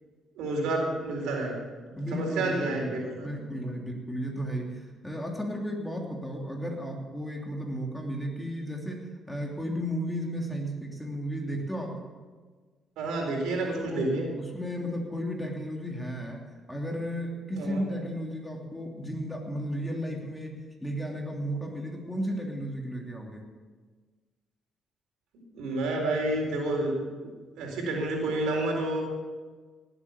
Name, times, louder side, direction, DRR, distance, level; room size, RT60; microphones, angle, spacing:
voice 1, 0.4-1.6 1.8-3.4 13.0-14.3 17.6-17.8 25.5-29.0, right 2 dB, 90° right, 0 dB, 4.3 m, -30 dB
voice 2, 2.0-2.8 3.2-12.0 13.9-23.4, equal, 5° left, 0 dB, 3.0 m, -34 dB
18.0 x 8.3 x 7.2 m, 1.4 s
cardioid pair, 90°, 0 cm